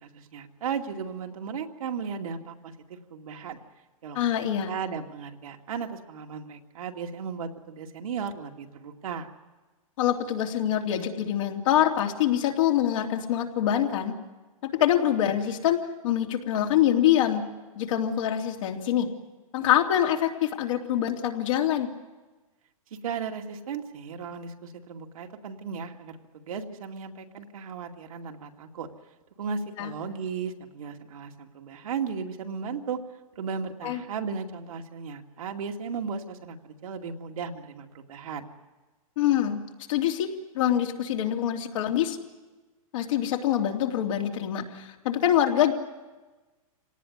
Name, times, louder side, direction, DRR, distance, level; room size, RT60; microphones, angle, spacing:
voice 1, 0.0-3.6 4.0-9.3 23.0-28.9 29.4-33.0 33.4-38.5, right 6 dB, 75° right, 2 dB, 2.4 m, -36 dB
voice 2, 4.1-4.7 10.0-14.1 14.6-17.4 17.7-19.1 19.5-21.9 29.8-29.9 33.8-34.0 39.2-39.6 39.9-40.3 40.5-42.2 42.9-45.7, left 11 dB, 60° left, 2 dB, 3.1 m, -25 dB
26.0 x 18.0 x 9.7 m, 1.2 s
hypercardioid pair, 130°, 18 cm